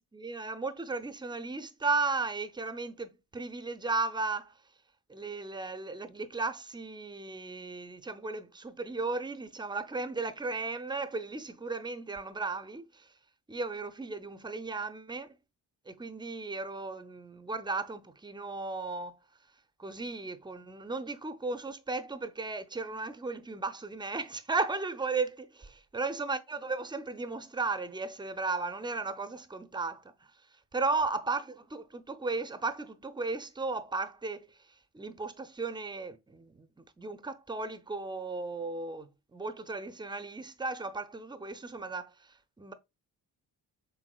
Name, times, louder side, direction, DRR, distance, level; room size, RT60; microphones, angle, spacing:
voice 1, 0.1-4.5 5.1-13.1 13.5-15.4 15.9-19.2 19.8-30.3 30.7-34.6 34.9-42.7, right 3 dB, 10° right, 0.4 m, -35 dB
4.5 x 3.5 x 2.3 m
hypercardioid pair, 45°, 48 cm